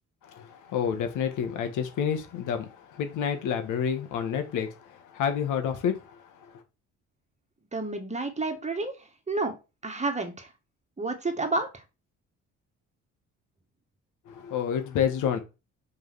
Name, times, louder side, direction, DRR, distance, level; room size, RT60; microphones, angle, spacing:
voice 1, 0.2-6.2 14.3-15.4, left 8 dB, 90° left, 1.8 m, -29 dB
voice 2, 7.7-8.9 9.3-9.6 9.8-10.5 11.0-11.8, right 3 dB, 25° right, 2.1 m, -30 dB
5.5 x 5.2 x 6.3 m
cardioid pair, 90°, 30 cm